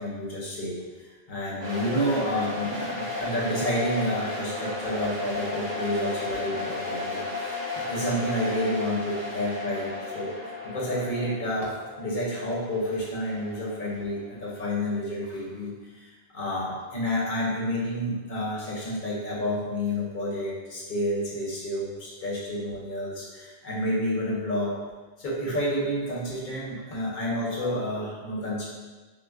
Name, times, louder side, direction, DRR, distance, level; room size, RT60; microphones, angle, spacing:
voice 1, 0.0-24.8 25.2-28.7, equal, 45° left, -5 dB, 1.0 m, -30 dB
sound 1, 1.6-14.5, left 3 dB, 90° right, 1.4 m, -34 dB
6.0 x 2.1 x 2.4 m, 1.3 s
omnidirectional pair, 1.2 m